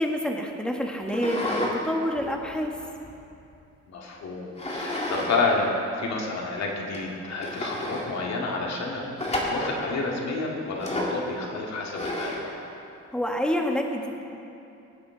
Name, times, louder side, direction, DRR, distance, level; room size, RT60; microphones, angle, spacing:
voice 1, 0.0-2.7 13.1-14.2, equal, 5° left, 2 dB, 1.4 m, -27 dB
sound 1, 1.1-1.8 2.2-3.5 4.6-5.4 5.6-5.7 6.4-6.5 6.9-7.0 7.4-8.1 9.2-9.8 10.8-11.2 11.9-12.5, left 1 dB, 20° left, 2.2 m, -31 dB
voice 2, 3.9-12.4, left 3 dB, 60° left, -1 dB, 2.2 m, -29 dB
19.0 x 8.0 x 3.9 m, 2.7 s
cardioid pair, 90°, 30 cm